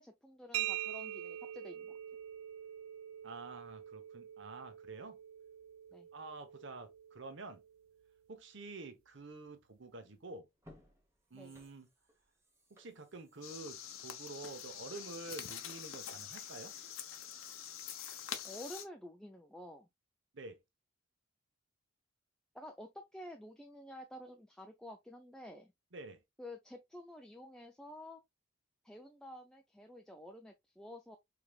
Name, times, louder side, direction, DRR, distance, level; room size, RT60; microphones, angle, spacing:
voice 1, 0.0-2.0 5.9-6.1 11.3-11.6 18.4-19.9 22.5-25.7 26.4-28.2 28.8-31.2, left 1 dB, 5° left, 0.3 m, -50 dB
sound 1, 0.5-8.1, right 12 dB, 75° right, 0.3 m, -44 dB
voice 2, 3.2-5.2 6.1-7.6 8.3-10.5 11.3-11.9 12.7-16.7 20.3-20.6 25.9-26.2, right 3 dB, 55° right, 0.9 m, -48 dB
sound 2, 9.9-10.0 10.5-15.2 15.6-15.7, left 1 dB, 15° right, 1.0 m, -64 dB
sound 3, 13.4-18.9, left 9 dB, 75° left, 0.8 m, -45 dB
4.7 x 3.4 x 2.3 m
head